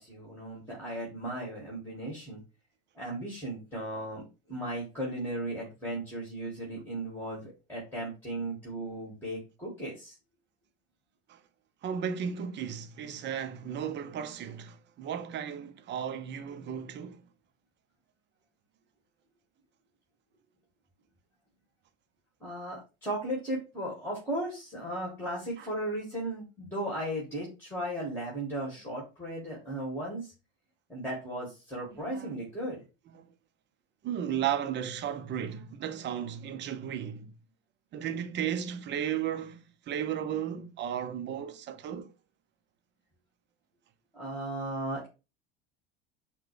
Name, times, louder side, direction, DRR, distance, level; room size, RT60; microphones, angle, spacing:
voice 1, 0.0-2.4 2.9-10.2 22.4-30.3 30.9-32.8 44.1-45.1, right 1 dB, 5° left, 2.2 m, -36 dB
voice 2, 11.8-17.2 25.6-25.7 31.9-32.3 33.1-33.3 34.0-37.3 37.9-42.1, right 9 dB, 35° right, 0.6 m, -35 dB
5.6 x 2.3 x 3.2 m
hypercardioid pair, 85°, 30 cm